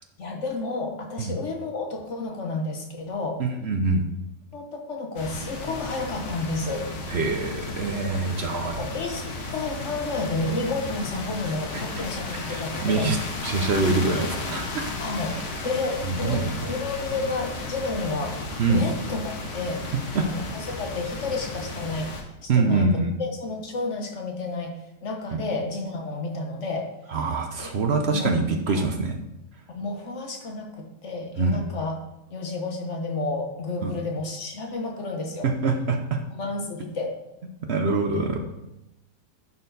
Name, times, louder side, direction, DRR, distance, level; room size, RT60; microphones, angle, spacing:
voice 1, 0.2-3.4 4.5-6.9 8.8-9.3 9.5-13.1 15.0-18.4 18.7-19.8 20.2-22.1 22.4-26.9 27.6-27.7 28.1-28.3 28.7-28.8 29.7-31.9 32.3-35.5 36.3-37.2 38.1-38.4, left 3 dB, 50° left, 2 dB, 1.2 m, -31 dB
voice 2, 3.4-4.0 7.1-8.8 11.7-12.1 12.5-13.2 13.4-14.9 16.1-16.6 18.6-18.9 20.1-20.3 22.5-23.1 25.3-25.5 27.1-29.1 31.4-31.6 33.8-33.9 35.4-36.2 37.7-38.4, right 3 dB, 55° right, 4 dB, 0.7 m, -24 dB
sound 1, 5.2-22.2, left 2 dB, 70° left, 1.7 m, -34 dB
11.0 x 4.4 x 4.0 m, 0.91 s
omnidirectional pair, 1.8 m